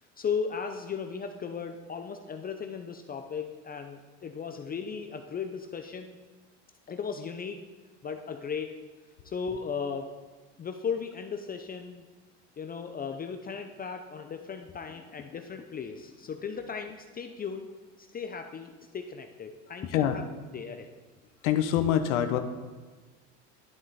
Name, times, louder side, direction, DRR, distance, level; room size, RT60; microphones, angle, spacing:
voice 1, 0.2-6.2 6.9-7.6 8.0-8.8 9.2-10.1 10.6-12.1 12.6-17.7 18.0-20.2 20.5-20.9, left 6 dB, 25° left, 6 dB, 0.6 m, -36 dB
voice 2, 19.8-20.2 21.4-22.4, left 10 dB, 85° left, 8 dB, 0.8 m, -25 dB
11.0 x 7.6 x 4.0 m, 1.3 s
supercardioid pair, 110°, 35 cm